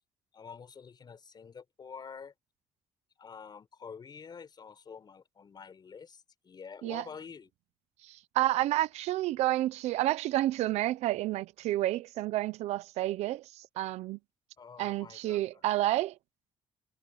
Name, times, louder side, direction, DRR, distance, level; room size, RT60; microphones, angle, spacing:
voice 1, 0.3-2.3 3.2-7.5 14.6-15.4, left 6 dB, 40° left, 5.8 m, -47 dB
voice 2, 8.0-14.2 14.8-16.2, right 15 dB, 85° right, 0.8 m, -30 dB
cardioid pair, 95°, 11 cm